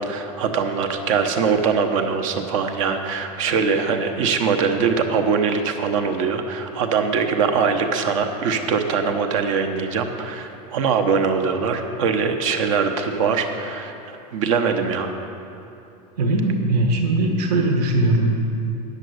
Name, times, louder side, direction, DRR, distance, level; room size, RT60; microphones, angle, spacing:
voice 1, 0.0-13.9 14.3-15.1, right 5 dB, 50° right, 6 dB, 0.9 m, -22 dB
voice 2, 16.2-18.4, right 2 dB, 70° right, 2 dB, 1.3 m, -20 dB
9.2 x 6.7 x 7.8 m, 2.8 s
supercardioid pair, 170°, 21 cm